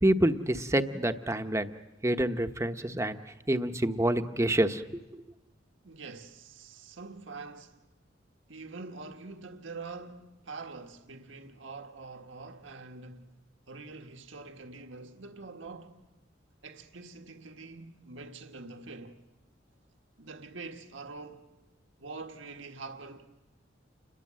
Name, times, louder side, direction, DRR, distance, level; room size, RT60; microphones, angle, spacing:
voice 1, 0.0-1.7 2.0-3.2 3.5-5.0, right 1 dB, 15° right, 1.0 m, -27 dB
voice 2, 5.8-7.8 8.5-13.3 13.7-16.0 16.6-19.2 20.2-21.5 22.0-23.3, right 3 dB, 75° right, 1.6 m, -45 dB
29.0 x 22.5 x 7.6 m
head